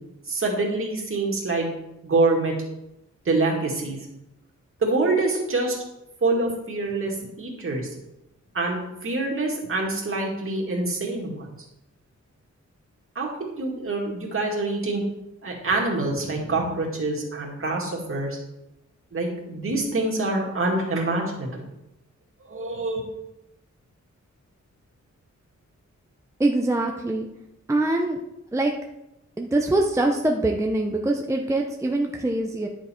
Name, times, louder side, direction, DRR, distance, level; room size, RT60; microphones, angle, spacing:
voice 1, 0.3-1.7 2.0-2.5 3.3-4.0 4.8-5.8 6.2-7.9 8.5-11.5 13.2-15.0 15.4-18.4 19.1-21.7 22.5-23.0, right 2 dB, 45° right, -1 dB, 2.2 m, -25 dB
voice 2, 26.4-27.3 27.7-28.2 28.5-28.7 29.4-32.7, right 2 dB, 10° right, 2 dB, 0.6 m, -23 dB
10.5 x 6.6 x 4.4 m, 0.91 s
wide cardioid pair, 165°, 29 cm